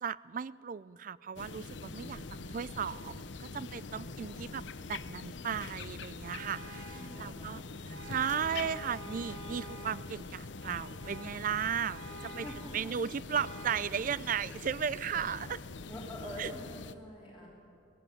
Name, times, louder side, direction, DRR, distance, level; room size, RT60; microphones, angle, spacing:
voice 1, 0.0-12.0 12.4-12.5 12.7-15.6 16.4-16.5, right 7 dB, 45° right, 20 dB, 0.4 m, -36 dB
sound 1, 1.4-16.9, left 3 dB, 70° left, 0.8 m, -44 dB
voice 2, 1.9-2.5 3.8-4.6 6.9-7.8 12.2-12.9 15.9-17.5, equal, 5° right, -7 dB, 3.1 m, -47 dB
Vehicle horn car horn honking, 6.2-7.1 7.9-10.1 10.6-11.4 11.9-12.7 13.3-14.0, right 1 dB, 80° right, 2.8 m, -48 dB
18.5 x 16.0 x 9.3 m, 2.7 s
head